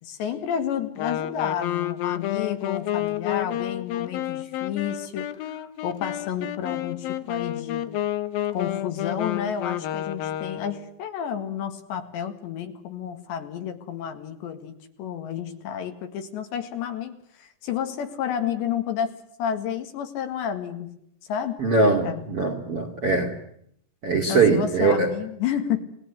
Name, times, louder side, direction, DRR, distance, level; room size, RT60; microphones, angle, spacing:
voice 1, 0.0-8.0 8.5-21.0 21.3-21.6 22.0-22.3 23.0-23.1 24.3-25.8, left 8 dB, 65° left, 7 dB, 3.8 m, -31 dB
Wind instrument woodwind instrument, 1.0-10.9, left 12 dB, 90° left, 2.0 m, -30 dB
voice 2, 21.6-23.3 24.0-25.1, right 4 dB, 40° right, 2 dB, 2.1 m, -21 dB
30.0 x 19.0 x 8.1 m, 0.71 s
omnidirectional pair, 6.0 m